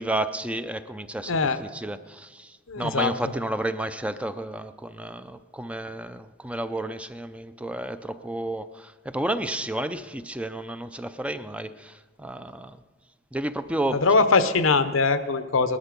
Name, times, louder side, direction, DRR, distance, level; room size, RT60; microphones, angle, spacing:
voice 1, 0.0-12.8 13.3-14.2, right 1 dB, 5° right, 11 dB, 0.5 m, -31 dB
voice 2, 1.2-1.6 2.7-3.1 13.9-15.8, left 4 dB, 85° left, 11 dB, 0.9 m, -22 dB
19.0 x 12.5 x 5.2 m, 1.4 s
head